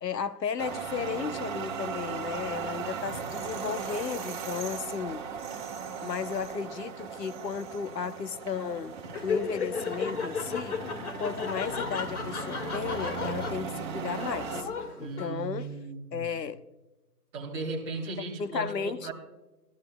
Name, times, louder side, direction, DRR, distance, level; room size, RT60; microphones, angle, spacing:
voice 1, 0.0-5.2 6.0-10.8 11.2-14.7 15.0-15.7 16.1-16.6 18.4-19.1, left 6 dB, 85° left, 0.9 m, -34 dB
sound 1, 0.6-14.6, right 6 dB, 30° right, 1.2 m, -37 dB
Laughter, 9.1-15.6, left 5 dB, 65° left, 2.0 m, -35 dB
voice 2, 15.0-16.3 17.3-19.1, right 3 dB, 5° right, 0.8 m, -37 dB
20.5 x 13.5 x 2.2 m
hypercardioid pair, 155°, 48 cm